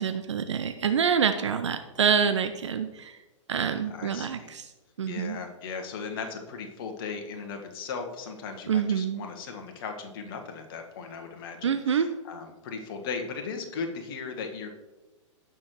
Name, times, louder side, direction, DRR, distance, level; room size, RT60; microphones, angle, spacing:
voice 1, 0.0-3.2 3.5-4.7 5.0-5.4 8.7-9.3 11.6-12.1, right 7 dB, 60° right, 9 dB, 0.6 m, -26 dB
voice 2, 3.9-4.5 5.0-14.7, left 5 dB, 45° left, 4 dB, 1.4 m, -37 dB
16.5 x 6.3 x 3.1 m, 1.1 s
figure-of-eight pair, 105°, 17 cm